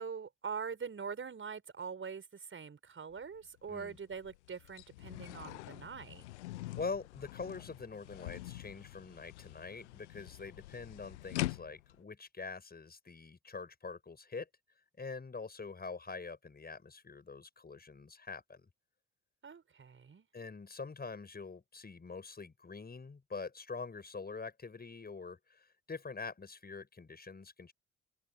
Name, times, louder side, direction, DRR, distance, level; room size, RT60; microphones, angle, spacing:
voice 1, 0.0-6.2 19.4-20.3, right 6 dB, 35° right, 6.2 m, -43 dB
sound 1, 3.1-3.2 3.7-12.0, left 18 dB, 75° left, 0.9 m, -44 dB
voice 2, 6.8-14.5 15.0-18.7 20.3-27.7, left 4 dB, 25° left, 6.4 m, -44 dB
figure-of-eight pair, 45°, 36 cm